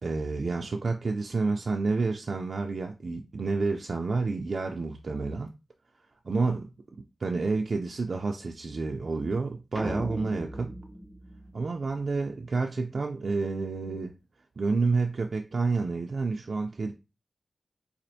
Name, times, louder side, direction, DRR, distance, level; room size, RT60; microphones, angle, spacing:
voice 1, 0.0-5.5 6.2-6.7 7.2-10.7 11.5-14.1 14.6-16.9, right 3 dB, 65° right, 0.4 m, -29 dB
sound 1, 9.8-12.2, equal, ahead, 0.4 m, -38 dB
4.2 x 2.5 x 2.7 m
cardioid pair, 45°, 0 cm